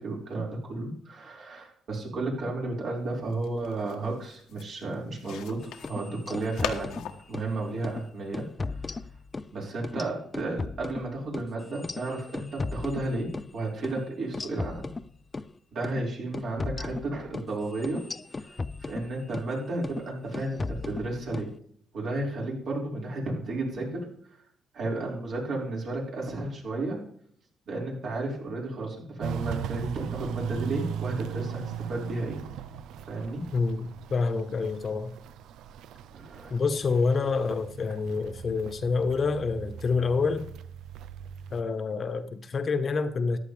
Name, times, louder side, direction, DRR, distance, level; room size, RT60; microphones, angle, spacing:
voice 1, 0.0-7.0 7.3-8.4 9.5-13.3 13.5-14.9 15.7-18.0 18.4-21.5 21.9-24.0 24.7-27.0 27.7-32.4 33.1-33.4 36.1-36.5, right 2 dB, 60° right, 5.1 m, -33 dB
sound 1, 3.0-8.5, left 9 dB, 90° left, 1.2 m, -41 dB
sound 2, 5.7-7.5 7.8-8.0 8.3-9.5 9.8-13.5 13.8-14.0 14.3-15.5 15.8-16.0 16.3-19.5 19.8-20.1 20.3-21.5, left 3 dB, 25° left, 0.4 m, -36 dB
Walk footsteps, 29.2-41.6, right 8 dB, 85° right, 0.6 m, -38 dB
voice 2, 33.5-35.1 36.5-40.5 41.5-43.4, left 4 dB, 45° left, 1.1 m, -27 dB
14.5 x 11.0 x 3.4 m
cardioid pair, 90°, 0 cm